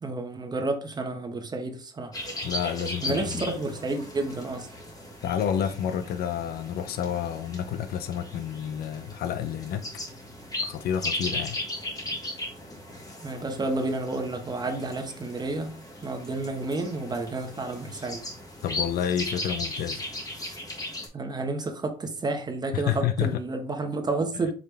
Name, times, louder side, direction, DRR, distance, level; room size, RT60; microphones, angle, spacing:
voice 1, 0.0-2.1 3.0-4.7 13.2-18.2 21.1-24.5, right 2 dB, 25° right, 1.0 m, -30 dB
sound 1, 2.1-21.1, left 1 dB, 20° left, 1.6 m, -37 dB
voice 2, 2.4-3.6 5.2-9.9 10.6-11.6 18.6-20.1 22.7-23.4, left 9 dB, 65° left, 0.6 m, -29 dB
4.9 x 3.3 x 3.2 m
cardioid pair, 110°, 17 cm